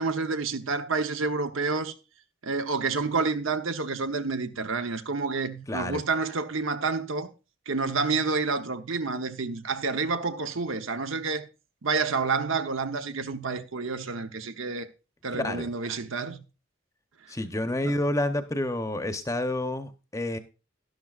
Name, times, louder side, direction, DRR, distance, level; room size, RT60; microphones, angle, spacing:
voice 1, 0.0-1.9 2.4-7.3 7.7-11.5 11.8-14.9 15.2-16.4 17.8-18.0, right 4 dB, 70° right, 0.9 m, -29 dB
voice 2, 5.7-6.0 15.3-15.7 17.3-20.4, left 1 dB, 15° left, 0.8 m, -29 dB
12.0 x 12.0 x 2.5 m
head